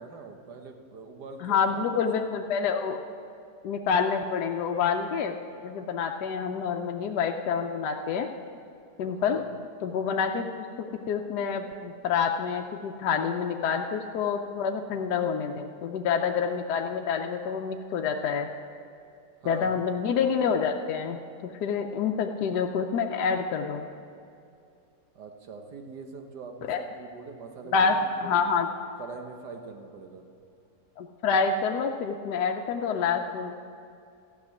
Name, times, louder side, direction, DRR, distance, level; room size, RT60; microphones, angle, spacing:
voice 1, 0.0-2.1 9.2-9.5 19.4-19.8 25.2-28.3 29.0-30.3, right 4 dB, 85° right, 4 dB, 1.7 m, -43 dB
voice 2, 1.4-3.0 3.6-5.3 5.6-8.3 9.0-9.4 9.8-10.7 11.1-18.5 19.4-23.9 26.7-26.8 27.7-28.7 31.0-33.5, left 6 dB, 80° left, 3 dB, 1.2 m, -27 dB
13.5 x 6.8 x 9.5 m, 2.5 s
omnidirectional pair, 1.7 m